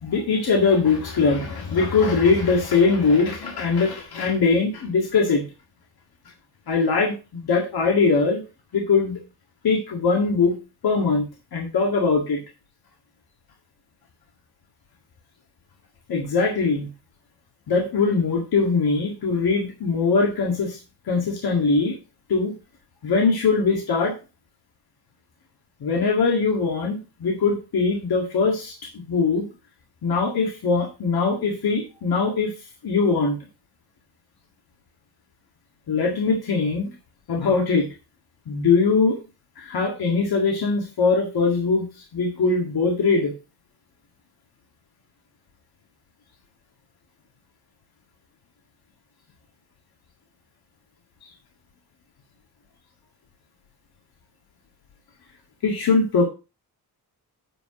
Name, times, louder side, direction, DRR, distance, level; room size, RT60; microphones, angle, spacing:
voice 1, 0.0-5.4 6.7-8.4 8.7-9.2 9.6-10.6 10.8-12.4 16.1-16.9 17.7-20.8 21.1-22.0 22.3-22.5 23.0-24.1 25.8-29.4 30.0-32.5 32.8-33.4 35.9-36.9 37.3-37.9 38.5-39.2 39.6-43.3 51.2-51.3 55.6-56.3, left 4 dB, 70° left, 0 dB, 2.0 m, -21 dB
8.9 x 5.0 x 4.9 m, 0.31 s
wide cardioid pair, 120°, 39 cm